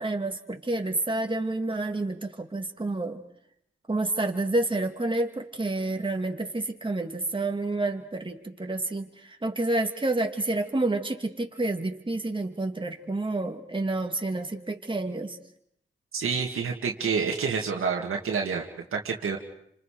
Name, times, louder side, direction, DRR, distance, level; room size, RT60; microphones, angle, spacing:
voice 1, 0.0-3.2 3.9-15.4, right 2 dB, 25° right, 4 dB, 2.7 m, -29 dB
voice 2, 16.1-19.4, right 5 dB, 90° right, 0 dB, 2.2 m, -28 dB
30.0 x 26.0 x 5.0 m, 0.71 s
cardioid pair, 65°, 21 cm